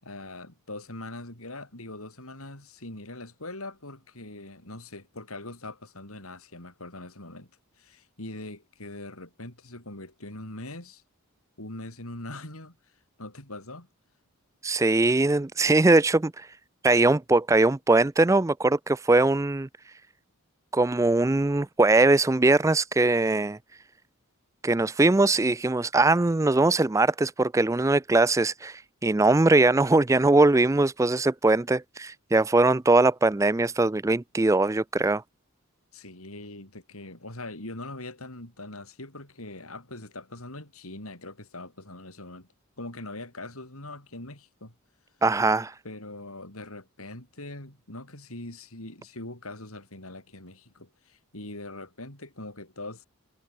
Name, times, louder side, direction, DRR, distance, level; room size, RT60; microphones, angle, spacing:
voice 1, 0.0-7.5 7.8-11.0 11.6-12.8 13.2-13.9 35.9-42.5 42.8-44.7 45.8-53.1, left 2 dB, 75° left, 6.5 m, -42 dB
voice 2, 14.6-16.5 16.8-19.7 20.7-23.6 24.6-35.2 45.2-45.7, right 2 dB, 15° right, 0.3 m, -21 dB
head